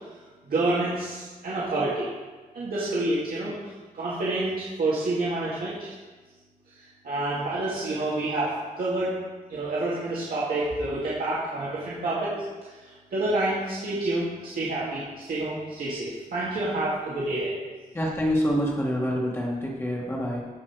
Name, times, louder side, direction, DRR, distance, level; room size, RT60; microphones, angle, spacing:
voice 1, 0.5-2.1 2.5-3.5 3.9-5.9 7.0-9.2 9.5-12.3 12.6-12.7 13.1-17.5, right 2 dB, 80° right, -8 dB, 2.3 m, -28 dB
voice 2, 17.9-20.4, equal, 15° left, -3 dB, 1.7 m, -26 dB
15.5 x 5.5 x 4.8 m, 1.3 s
wide cardioid pair, 160°, 15 cm